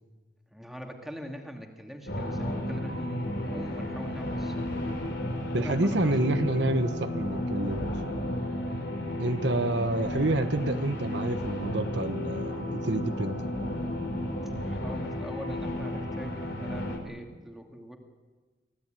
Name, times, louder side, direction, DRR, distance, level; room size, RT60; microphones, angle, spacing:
voice 1, 0.5-4.7 5.5-6.1 9.2-9.4 14.6-18.0, equal, ahead, 2 dB, 2.4 m, -43 dB
sound 1, 2.1-17.0, left 1 dB, 60° left, 3.7 m, -33 dB
voice 2, 5.5-7.9 9.2-13.5, right 2 dB, 60° right, 8 dB, 1.1 m, -28 dB
24.5 x 16.5 x 9.1 m, 1.3 s
head